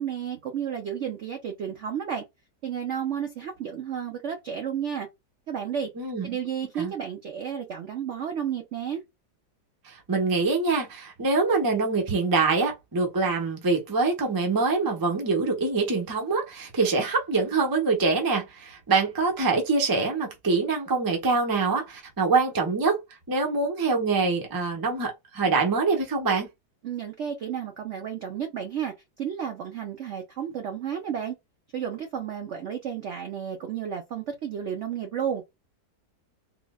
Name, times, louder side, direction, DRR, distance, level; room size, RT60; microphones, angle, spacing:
voice 1, 0.0-2.2 2.6-5.1 5.5-5.9 6.2-9.0 26.8-31.3 31.7-35.4, right 8 dB, 70° right, 0.7 m, -32 dB
voice 2, 6.0-6.4 6.8-6.9 9.8-23.0 23.3-26.5, right 4 dB, 25° right, 0.4 m, -24 dB
4.1 x 2.1 x 2.2 m
omnidirectional pair, 1.9 m